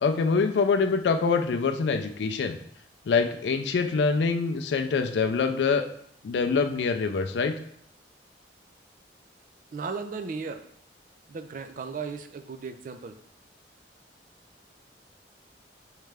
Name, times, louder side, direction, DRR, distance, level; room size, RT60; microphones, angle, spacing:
voice 1, 0.0-2.6 3.1-5.8 6.2-7.5, left 4 dB, 75° left, 6 dB, 0.4 m, -25 dB
voice 2, 9.7-10.6 11.3-13.2, right 5 dB, 45° right, 8 dB, 0.4 m, -36 dB
4.8 x 3.2 x 3.3 m, 0.65 s
head